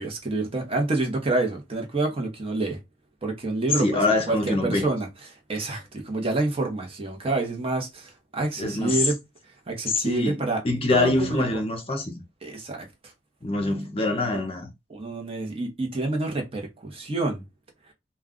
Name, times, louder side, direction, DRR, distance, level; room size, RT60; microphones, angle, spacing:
voice 1, 0.0-2.8 3.2-5.1 5.5-9.2 9.7-10.6 10.9-11.6 12.4-13.1 14.2-14.4 14.9-17.4, right 2 dB, 35° right, 0.8 m, -28 dB
voice 2, 3.8-4.9 8.6-9.1 9.9-12.2 13.4-14.7, left 2 dB, 35° left, 0.6 m, -25 dB
2.3 x 2.2 x 3.6 m
head